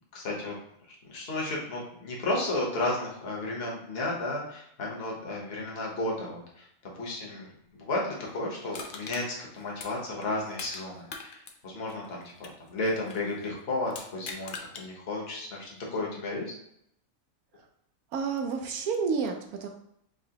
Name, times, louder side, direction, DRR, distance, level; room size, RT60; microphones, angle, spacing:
voice 1, 0.1-0.5 0.9-6.7 7.0-7.5 7.7-16.5, left 2 dB, 45° left, -2 dB, 1.2 m, -33 dB
Crushing, 8.7-10.8 11.1-13.3 13.9-14.9 15.3-15.4, left 4 dB, 80° left, 0.4 m, -42 dB
voice 2, 18.1-19.7, right 5 dB, 80° right, 4 dB, 1.1 m, -30 dB
5.0 x 2.9 x 2.8 m, 0.74 s
omnidirectional pair, 1.5 m